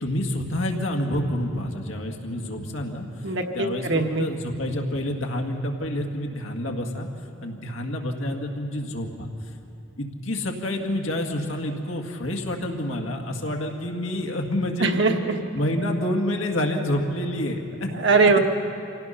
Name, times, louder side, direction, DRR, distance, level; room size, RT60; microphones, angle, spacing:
voice 1, 0.0-3.1 3.5-7.1 7.4-9.3 10.0-14.9 15.5-18.0, left 1 dB, 90° left, 2 dB, 2.0 m, -28 dB
voice 2, 3.2-4.3 14.8-15.4 18.0-18.4, right 3 dB, 60° right, 4 dB, 1.3 m, -21 dB
26.0 x 17.5 x 5.8 m, 2.9 s
head